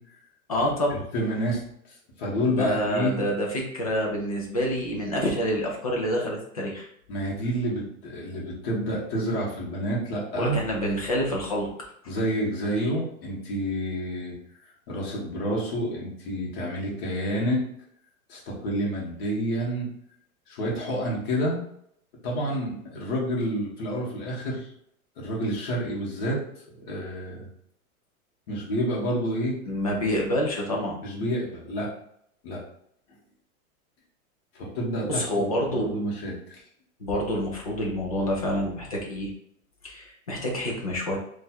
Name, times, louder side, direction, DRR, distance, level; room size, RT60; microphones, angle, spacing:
voice 1, 0.5-1.0 2.4-6.9 10.3-11.7 29.6-31.0 35.1-35.9 37.0-39.3 39.8-41.2, equal, 30° left, -1 dB, 0.4 m, -27 dB
voice 2, 1.1-1.6 2.2-3.2 7.1-10.6 12.1-14.3 14.9-17.6 18.3-19.9 20.5-21.6 22.2-24.7 25.2-26.4 26.9-27.5 28.5-29.6 31.0-31.9 32.4-32.6 34.5-36.3, equal, 45° left, -4 dB, 1.3 m, -29 dB
3.2 x 2.4 x 4.2 m, 0.70 s
supercardioid pair, 180°, 43 cm